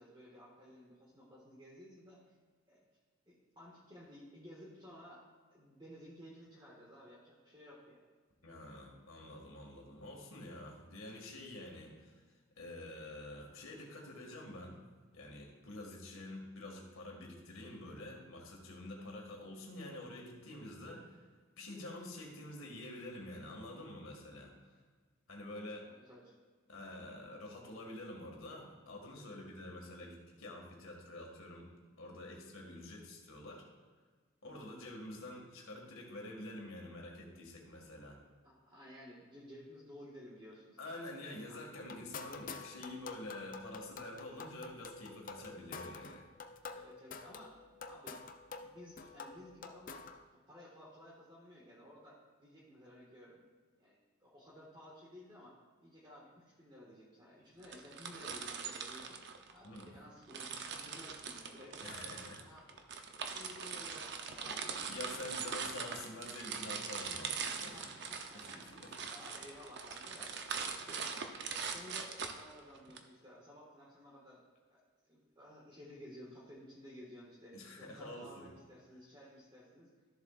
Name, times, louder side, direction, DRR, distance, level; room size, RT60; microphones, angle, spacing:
voice 1, 0.0-2.2 2.7-2.8 3.3-5.2 5.5-8.0 25.9-26.3 34.4-34.8 38.4-40.9 41.5-41.6 46.7-47.6 47.8-48.2 48.5-53.4 53.8-62.0 62.4-62.8 63.3-65.0 65.4-65.7 67.7-68.7 69.1-71.1 71.7-74.4 74.7-79.9, equal, 20° right, -6 dB, 1.6 m, -55 dB
voice 2, 8.4-12.2 12.6-14.8 15.1-21.2 21.6-24.8 25.3-25.9 26.7-31.7 32.0-33.6 34.4-38.2 40.8-46.3 59.6-59.9 61.8-62.6 64.8-67.8 68.3-68.9 77.5-78.5, left 1 dB, 75° left, 0 dB, 1.9 m, -48 dB
sound 1, 41.7-50.2, left 4 dB, 40° left, 0.4 m, -49 dB
sound 2, 57.6-59.9 60.3-73.0, right 6 dB, 55° right, 0.7 m, -42 dB
13.5 x 7.1 x 2.4 m, 1.5 s
head